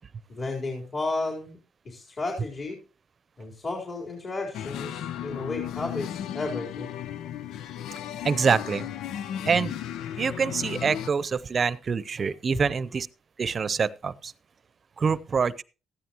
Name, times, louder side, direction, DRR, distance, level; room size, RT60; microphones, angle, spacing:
voice 1, 0.3-1.6 1.8-2.8 3.4-6.9, left 2 dB, 35° left, -1 dB, 4.1 m, -33 dB
sound 1, 4.5-11.1, left 10 dB, 85° left, 0.7 m, -35 dB
voice 2, 8.2-8.9 9.5-9.8 10.2-13.1 13.4-14.3 15.0-15.6, right 5 dB, 40° right, 18 dB, 0.7 m, -25 dB
14.5 x 13.0 x 3.0 m, 0.33 s
cardioid pair, 90°, 0 cm